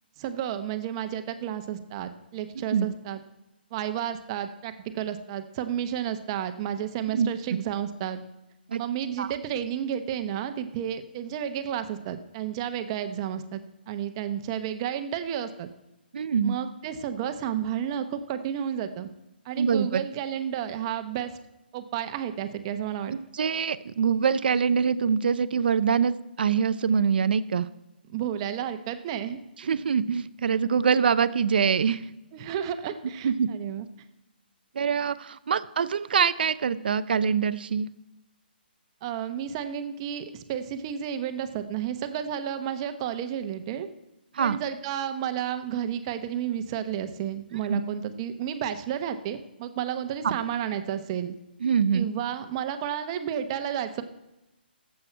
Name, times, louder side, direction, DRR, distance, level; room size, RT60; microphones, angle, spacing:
voice 1, 0.2-3.2 3.7-8.2 8.8-15.7 16.4-19.1 19.4-21.4 21.7-23.2 28.1-29.4 32.3-33.9 39.0-43.9 44.4-51.4 51.9-54.0, right 9 dB, 30° right, 9 dB, 0.9 m, -32 dB
voice 2, 16.1-16.6 19.6-20.0 23.1-27.7 29.7-32.0 33.2-33.5 34.7-37.9 44.3-44.6 47.7-47.8 50.2-50.4 51.6-52.1, right 6 dB, 60° right, 14 dB, 0.6 m, -24 dB
17.5 x 7.7 x 4.5 m, 0.99 s
hypercardioid pair, 145°, 6 cm